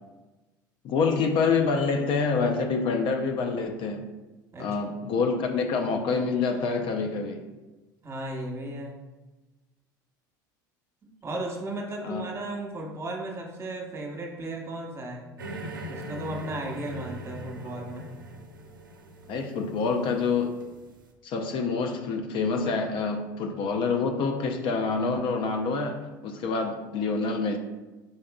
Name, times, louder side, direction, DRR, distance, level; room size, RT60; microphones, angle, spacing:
voice 1, 0.8-4.0 4.6-7.4 12.0-12.3 19.3-20.6 21.2-27.6, left 4 dB, 50° left, 5 dB, 0.5 m, -27 dB
voice 2, 8.0-9.0 11.2-15.3 15.9-18.1, right 1 dB, 25° right, 0 dB, 1.0 m, -35 dB
sound 1, 15.4-21.0, right 2 dB, 90° right, 0.4 m, -41 dB
5.3 x 3.6 x 2.3 m, 1.1 s
hypercardioid pair, 75°, 11 cm